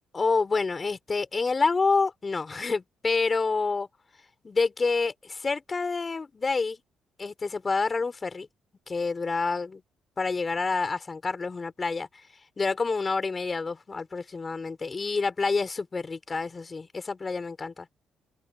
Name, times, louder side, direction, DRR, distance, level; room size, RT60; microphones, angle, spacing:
voice 1, 0.1-3.9 4.4-6.8 7.2-8.5 8.9-9.8 10.2-12.1 12.6-17.9, left 4 dB, 30° left, 4.2 m, -28 dB
cardioid pair, 90°, 0 cm